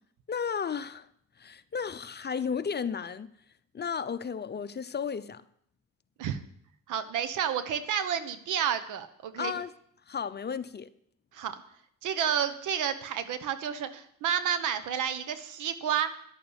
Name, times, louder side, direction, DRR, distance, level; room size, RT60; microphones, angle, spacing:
voice 1, 0.3-1.1 1.4-3.3 3.7-5.4 9.4-9.7 10.1-10.9, left 6 dB, 35° left, 0.8 m, -33 dB
voice 2, 6.9-9.5 11.3-11.6 12.0-16.1, right 9 dB, 85° right, 1.2 m, -30 dB
11.5 x 8.8 x 8.1 m
cardioid pair, 90°, 30 cm